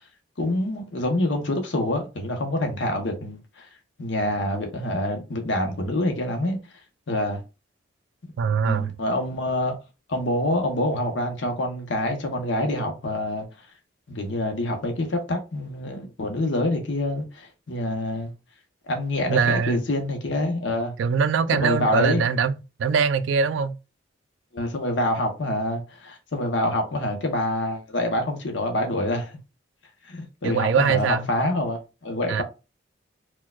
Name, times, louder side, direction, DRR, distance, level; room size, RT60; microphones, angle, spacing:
voice 1, 0.4-3.7 4.0-6.6 7.1-7.4 8.6-9.7 10.1-13.5 14.1-18.3 18.9-20.9 21.5-22.3 24.5-29.3 30.1-32.4, left 1 dB, 70° left, 0.8 m, -26 dB
voice 2, 8.4-9.0 19.3-19.8 21.0-23.8 30.4-31.3 32.3-32.4, right 6 dB, 75° right, 0.3 m, -22 dB
4.4 x 2.2 x 2.2 m
head